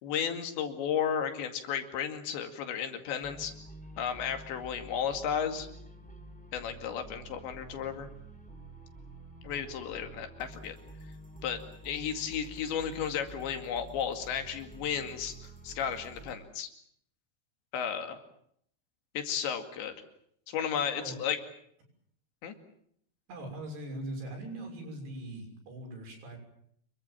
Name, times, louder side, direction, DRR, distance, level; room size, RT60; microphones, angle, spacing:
voice 1, 0.0-3.5 4.0-5.7 6.5-8.1 9.4-10.8 11.4-16.7 17.7-18.2 19.2-19.9 20.5-21.4 22.4-22.5, left 8 dB, 80° left, 7 dB, 4.6 m, -33 dB
sound 1, 3.2-16.3, right 2 dB, ahead, 3.7 m, -49 dB
voice 2, 23.3-26.4, right 1 dB, 65° right, 3 dB, 8.4 m, -41 dB
28.0 x 23.0 x 7.3 m, 0.68 s
omnidirectional pair, 5.1 m